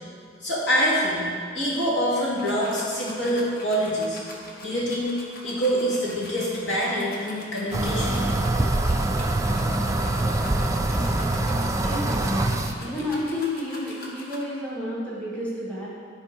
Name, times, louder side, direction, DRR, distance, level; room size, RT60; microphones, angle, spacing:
voice 1, 0.4-1.2 1.5-4.2 4.6-5.1 5.4-8.2, equal, 70° left, -6 dB, 2.3 m, -25 dB
sound 1, 2.4-14.4, left 1 dB, 50° left, 1.2 m, -43 dB
sound 2, 7.7-12.7, right 2 dB, 15° right, 0.4 m, -24 dB
voice 2, 11.8-12.5 12.8-15.9, left 1 dB, 5° left, -7 dB, 1.6 m, -31 dB
10.5 x 4.5 x 5.2 m, 2.2 s
head